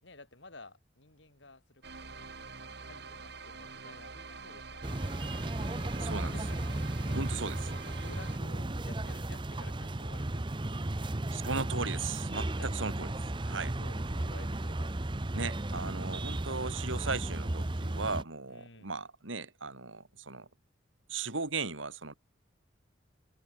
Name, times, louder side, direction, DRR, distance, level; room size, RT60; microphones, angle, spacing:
voice 1, 0.0-5.0 6.3-11.1 12.3-12.8 13.8-14.9 18.5-18.9, left 2 dB, 70° left, 5.4 m, -53 dB
sound 1, 1.8-8.4, right 4 dB, 60° right, 2.4 m, -46 dB
sound 2, 4.8-18.2, right 1 dB, 25° right, 0.8 m, -35 dB
voice 2, 6.0-6.3 7.1-7.7 11.3-13.1 13.4-13.8 15.3-20.5 21.1-22.1, right 4 dB, 90° right, 3.8 m, -37 dB
head